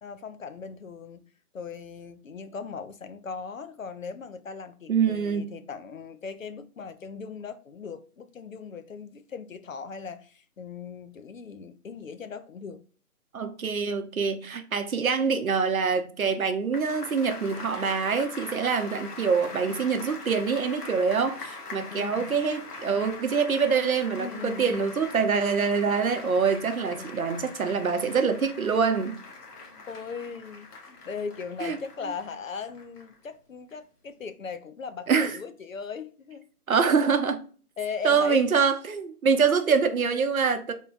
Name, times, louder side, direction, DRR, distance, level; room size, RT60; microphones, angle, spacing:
voice 1, 0.0-1.2 1.5-12.8 21.7-22.4 24.2-24.9 26.8-27.2 29.6-30.7 31.0-36.5 37.8-38.5, left 5 dB, 60° left, 0.5 m, -38 dB
voice 2, 4.9-5.4 13.3-29.2 31.6-31.8 35.1-35.3 36.7-37.4 38.0-40.7, right 5 dB, 65° right, 0.8 m, -25 dB
sound 1, 16.7-33.2 33.7-33.8, left 3 dB, 80° left, 1.3 m, -42 dB
3.6 x 2.3 x 3.9 m
hypercardioid pair, 175°, 46 cm